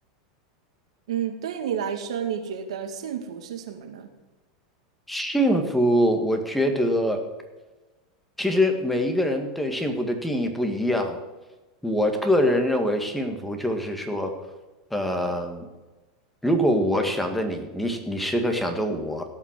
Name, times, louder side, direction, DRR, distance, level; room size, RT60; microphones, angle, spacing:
voice 1, 1.1-4.1, right 8 dB, 85° right, 6 dB, 2.1 m, -30 dB
voice 2, 5.1-7.2 8.4-11.2 11.8-14.3 14.9-15.7 16.4-19.3, equal, 5° left, 4 dB, 2.0 m, -24 dB
16.5 x 6.0 x 7.6 m, 1.2 s
supercardioid pair, 120°, 3 cm